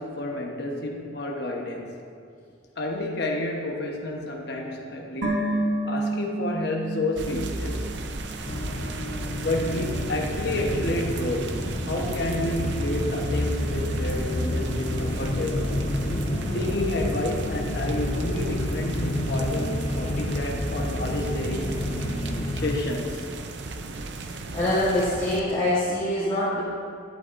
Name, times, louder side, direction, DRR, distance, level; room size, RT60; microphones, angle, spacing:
voice 1, 0.0-1.9 2.8-5.6 5.8-7.9 9.4-15.8 16.5-21.9 22.5-23.3, left 2 dB, 60° left, 1 dB, 1.2 m, -30 dB
sound 1, 5.2-8.5 8.8-8.9, right 1 dB, 85° right, 1.5 m, -30 dB
sound 2, 7.2-25.4, right 2 dB, 65° right, 0.6 m, -34 dB
sound 3, 8.5-22.8, left 1 dB, 35° left, 0.6 m, -30 dB
voice 2, 24.5-26.6, left 1 dB, 15° left, -13 dB, 2.3 m, -24 dB
11.5 x 11.0 x 2.6 m, 2.3 s
head